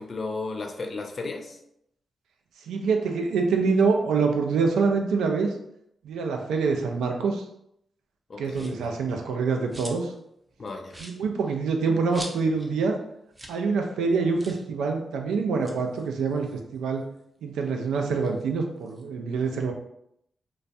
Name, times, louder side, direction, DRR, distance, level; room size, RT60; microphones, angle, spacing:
voice 1, 0.0-1.6 8.3-8.8 10.6-11.0, left 3 dB, 50° left, 4 dB, 0.4 m, -34 dB
voice 2, 2.7-5.5 6.0-7.4 8.4-10.1 11.0-13.0 13.5-16.5 16.7-17.0 17.4-19.7, right 4 dB, 85° right, 3 dB, 0.3 m, -25 dB
sound 1, 8.5-8.9 9.3-10.2 10.5-10.6 10.9-12.7 13.0-13.1 13.3-13.6 13.9-14.0 14.3-14.7 15.4-17.2 17.6-19.1, right 1 dB, 20° right, 0.5 m, -44 dB
2.2 x 2.1 x 2.6 m, 0.76 s
supercardioid pair, 45°, 0 cm